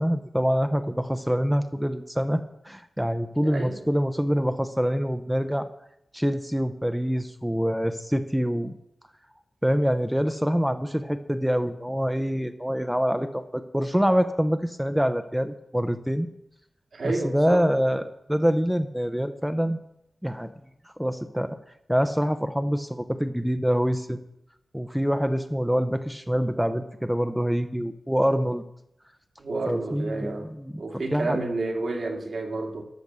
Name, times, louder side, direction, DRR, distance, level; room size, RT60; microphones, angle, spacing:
voice 1, 0.0-5.7 6.1-8.7 9.6-16.3 17.0-18.0 18.3-19.8 20.2-20.5 21.0-21.6 21.9-24.2 24.7-28.6 29.7-31.4, equal, 5° right, 0.6 m, -25 dB
voice 2, 3.4-3.7 16.9-17.7 29.4-30.5 30.8-32.8, right 2 dB, 65° right, 2.1 m, -30 dB
13.5 x 6.1 x 6.8 m
wide cardioid pair, 105°, 0 cm